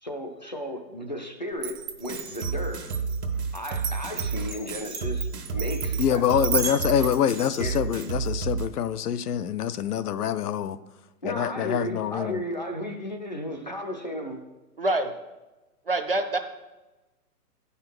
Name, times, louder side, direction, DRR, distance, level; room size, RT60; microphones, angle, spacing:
voice 1, 0.0-2.9 3.5-6.5 7.6-7.8 11.2-14.4, left 1 dB, 30° left, 0.4 m, -34 dB
Glass, 1.6-8.1, right 7 dB, 60° right, 0.9 m, -34 dB
sound 1, 2.1-8.7, right 5 dB, 80° right, 1.6 m, -31 dB
voice 2, 6.0-10.8 11.2-12.4, left 9 dB, 75° left, 0.6 m, -25 dB
voice 3, 14.8-15.1 15.9-16.4, right 2 dB, 40° right, 0.4 m, -25 dB
8.1 x 5.6 x 6.1 m
hypercardioid pair, 175°, 47 cm